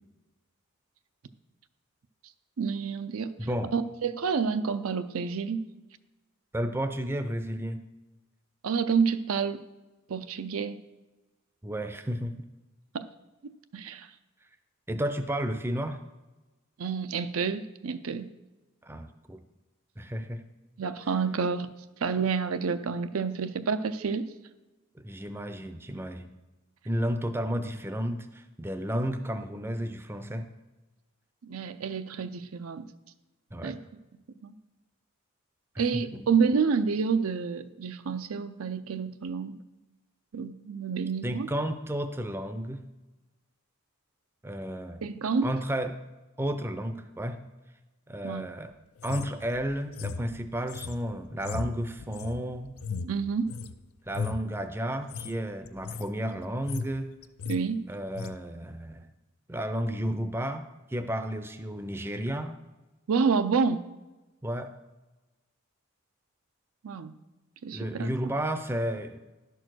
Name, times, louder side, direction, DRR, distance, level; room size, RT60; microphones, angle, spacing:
voice 1, 2.6-5.7 8.6-9.6 10.1-10.9 12.9-13.1 13.7-14.1 16.8-18.3 20.8-21.7 22.0-24.3 31.4-32.9 33.6-33.8 34.4-34.5 35.8-39.6 40.3-41.5 45.0-45.5 48.2-48.4 53.0-53.5 57.5-57.9 63.1-63.8 66.8-67.2 67.6-68.3, right 5 dB, 80° right, 10 dB, 0.5 m, -29 dB
voice 2, 3.4-3.7 6.5-7.8 11.6-12.3 14.9-16.0 18.8-19.4 20.0-20.4 25.0-26.3 26.9-30.4 33.5-33.7 35.9-36.3 41.2-42.8 44.4-45.0 45.4-46.0 46.4-47.4 48.1-48.7 49.0-52.7 54.1-57.1 57.9-59.1 59.5-62.6 64.4-64.7 67.7-69.2, equal, 10° right, 8 dB, 0.5 m, -32 dB
sound 1, 49.0-53.7 54.1-54.5 55.0-55.3 55.6-56.1 56.4-57.0 57.2-57.6 58.1-58.3, left 5 dB, 85° left, 0.5 m, -37 dB
11.0 x 4.6 x 6.1 m, 1.1 s
head